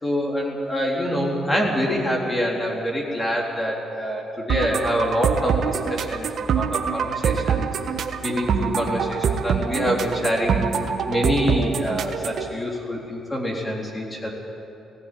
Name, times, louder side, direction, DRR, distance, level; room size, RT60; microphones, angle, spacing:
voice 1, 0.0-7.7 8.2-10.7 11.1-14.3, equal, 20° left, -1 dB, 3.8 m, -25 dB
sound 1, 4.5-12.5, right 6 dB, 60° right, 1.4 m, -25 dB
18.0 x 17.5 x 9.4 m, 3.0 s
cardioid pair, 90°, 0 cm